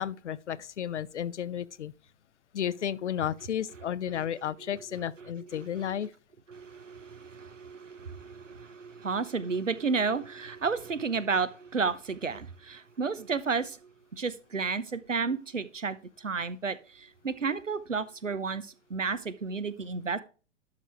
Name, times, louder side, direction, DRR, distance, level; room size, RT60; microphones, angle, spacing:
voice 1, 0.0-1.9 2.5-6.1, left 9 dB, 70° left, 0.7 m, -33 dB
voice 2, 4.6-6.1 6.5-20.2, right 5 dB, 90° right, 0.9 m, -32 dB
11.5 x 4.9 x 3.4 m
figure-of-eight pair, 110°, 37 cm